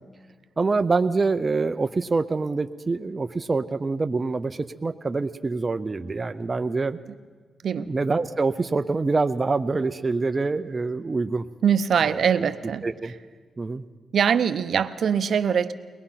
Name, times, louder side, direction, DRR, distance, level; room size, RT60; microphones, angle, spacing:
voice 1, 0.6-7.0 7.8-11.5 12.1-12.4 12.8-13.1 13.6-13.8, right 3 dB, 30° right, 8 dB, 0.5 m, -25 dB
voice 2, 11.6-13.2 14.1-15.7, right 7 dB, 65° right, 12 dB, 0.7 m, -23 dB
23.5 x 19.5 x 5.8 m, 1.5 s
wide cardioid pair, 120°, 0 cm